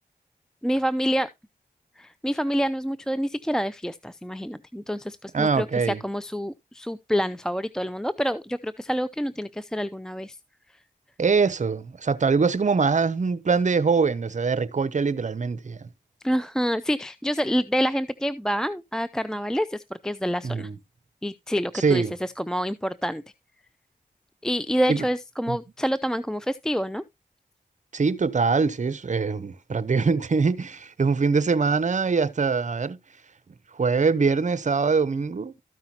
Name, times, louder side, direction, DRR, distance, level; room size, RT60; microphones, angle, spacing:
voice 1, 0.6-1.3 2.0-10.4 16.2-20.7 21.2-23.2 24.4-27.0, equal, 5° left, 0.5 m, -27 dB
voice 2, 5.3-6.0 11.2-15.8 20.4-20.7 21.7-22.1 24.9-25.0 25.5-25.6 27.9-33.0 33.8-35.5, right 4 dB, 50° right, 0.8 m, -23 dB
13.5 x 5.6 x 2.8 m
cardioid pair, 45°, 16 cm